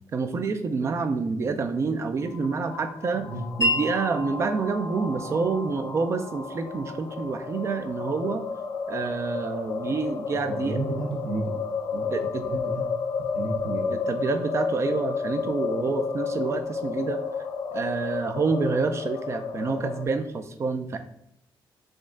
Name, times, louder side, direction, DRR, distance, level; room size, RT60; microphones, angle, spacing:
voice 1, 0.1-3.3 3.6-8.4 8.9-10.8 12.1-12.4 13.9-17.2 17.7-21.0, right 4 dB, 35° right, 9 dB, 0.4 m, -28 dB
sound 1, 2.2-20.1, left 5 dB, 65° left, 0.5 m, -32 dB
Wind chime, 3.6-11.2, equal, 40° left, 1.6 m, -35 dB
voice 2, 10.5-11.5 11.9-12.1 12.4-12.9 13.2-13.9, right 2 dB, 65° right, 1 dB, 0.8 m, -32 dB
5.1 x 2.4 x 3.6 m, 0.75 s
wide cardioid pair, 170°, 8 cm